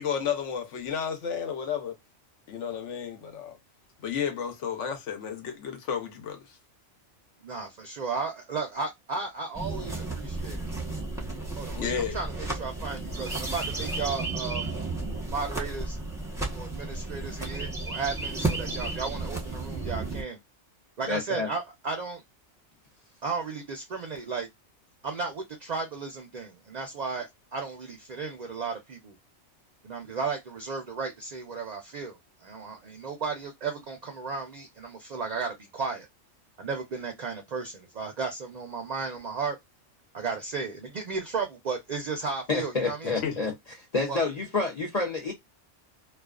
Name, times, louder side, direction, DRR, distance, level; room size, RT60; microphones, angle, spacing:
voice 1, 0.0-1.9 2.5-3.6 4.0-6.5 11.8-12.2 43.2-43.4, left 7 dB, 80° left, 1.1 m, -32 dB
voice 2, 7.4-10.7 11.6-14.7 15.3-16.0 16.5-20.4 21.0-22.2 23.2-24.5 25.0-29.2 29.8-36.1 36.6-39.6 40.1-43.1 44.1-44.2, right 4 dB, 55° right, 0.5 m, -34 dB
sound 1, 9.5-20.2, right 2 dB, 5° right, 0.7 m, -33 dB
voice 3, 21.1-21.5 42.5-43.5 43.9-45.3, left 3 dB, 45° left, 0.5 m, -28 dB
2.4 x 2.3 x 2.3 m
omnidirectional pair, 1.2 m